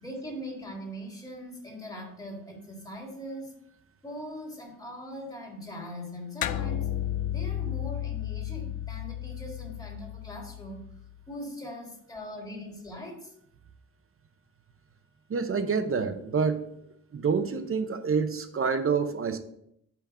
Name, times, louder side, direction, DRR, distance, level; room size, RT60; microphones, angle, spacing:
voice 1, 0.0-3.5 4.0-6.9 7.3-10.8 11.3-13.3, equal, 10° left, -1 dB, 1.8 m, -41 dB
sound 1, 6.4-11.2, left 11 dB, 70° left, 0.5 m, -33 dB
voice 2, 15.3-16.6 17.1-19.4, right 5 dB, 40° right, 9 dB, 0.7 m, -27 dB
5.8 x 5.2 x 6.1 m, 0.74 s
wide cardioid pair, 150°, 35 cm